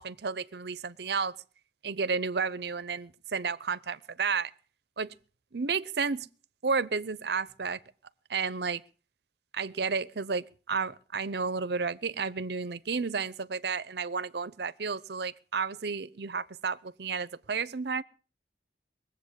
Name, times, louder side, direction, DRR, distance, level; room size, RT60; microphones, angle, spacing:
voice 1, 0.0-1.4 1.8-4.5 5.0-5.1 5.5-6.3 6.6-7.8 8.3-8.8 9.5-18.0, right 5 dB, 65° right, 0.7 m, -32 dB
20.5 x 8.1 x 8.1 m
head